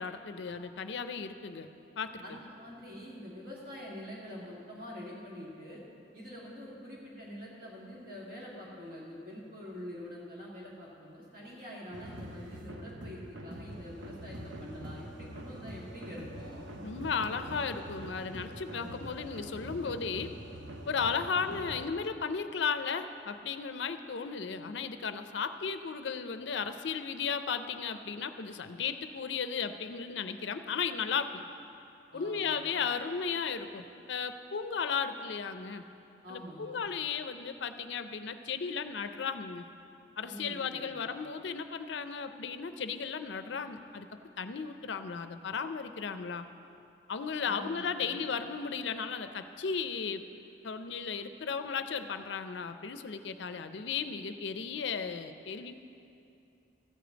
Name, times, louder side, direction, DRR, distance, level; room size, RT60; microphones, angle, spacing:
voice 1, 0.0-1.7 2.0-2.4 16.8-20.4 20.9-31.4 32.1-35.8 36.3-39.7 40.2-44.1 44.4-46.5 47.1-50.3 50.6-55.8, left 6 dB, 70° left, 9 dB, 0.5 m, -35 dB
voice 2, 2.2-5.8 6.1-16.8 32.1-32.6 36.2-36.7 40.2-41.0 47.4-48.2, equal, 50° right, -6 dB, 1.7 m, -45 dB
sound 1, 11.9-21.9, right 1 dB, 85° right, 0.9 m, -44 dB
14.5 x 5.1 x 8.0 m, 2.7 s
head